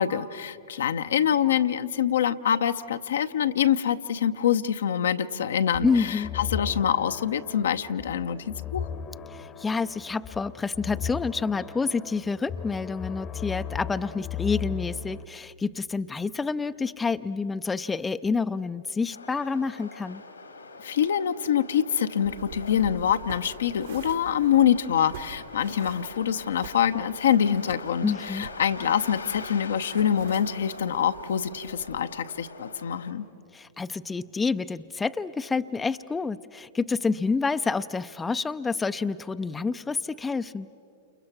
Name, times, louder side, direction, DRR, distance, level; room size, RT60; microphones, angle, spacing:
voice 1, 0.0-8.9 20.8-33.2, left 9 dB, 70° left, 9 dB, 0.8 m, -25 dB
sound 1, 5.7-15.2, left 8 dB, 30° left, 1.0 m, -37 dB
voice 2, 5.8-6.4 9.3-20.2 28.0-28.5 33.5-40.7, left 4 dB, 15° left, 11 dB, 0.5 m, -28 dB
sound 2, 19.1-33.1, left 3 dB, 85° left, 2.2 m, -43 dB
sound 3, 22.2-32.0, right 8 dB, 70° right, 3.4 m, -46 dB
29.5 x 28.5 x 6.0 m, 2.5 s
figure-of-eight pair, 100°, 0 cm